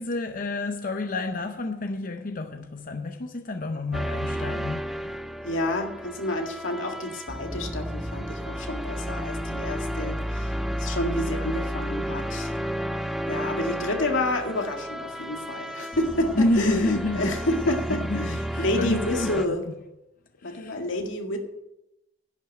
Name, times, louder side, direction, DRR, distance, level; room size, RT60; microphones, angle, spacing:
voice 1, 0.0-5.2 16.4-17.3 17.9-19.7 20.4-20.8, left 2 dB, 45° left, 0.6 m, -29 dB
sound 1, 3.9-19.5, equal, ahead, 0.4 m, -32 dB
voice 2, 5.4-12.6 13.0-19.6 20.4-21.4, left 1 dB, 85° left, 1.9 m, -29 dB
11.0 x 6.2 x 8.8 m
head